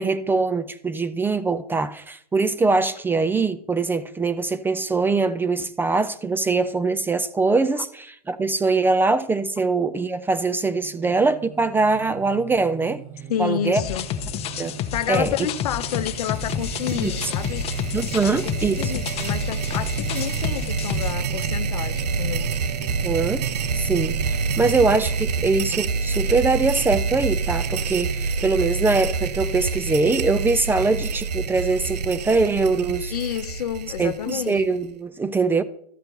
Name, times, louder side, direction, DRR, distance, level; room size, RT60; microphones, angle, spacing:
voice 1, 0.0-13.0 13.4-13.8 14.6-14.8 15.1-15.3 17.0-17.3 17.9-18.9 23.0-23.4 23.7-33.1 34.0-35.6, right 3 dB, 10° right, 0.4 m, -22 dB
Singing, 10.6-27.8, right 8 dB, 65° right, 1.1 m, -38 dB
voice 2, 13.3-14.1 14.9-18.0 18.2-18.3 18.6-22.5 33.1-34.6, left 10 dB, 70° left, 0.8 m, -29 dB
sound 1, 13.8-21.1, left 9 dB, 30° left, 0.8 m, -30 dB
sound 2, 15.8-34.9, right 4 dB, 85° right, 0.6 m, -27 dB
12.5 x 4.4 x 6.8 m
hypercardioid pair, 110°, 20 cm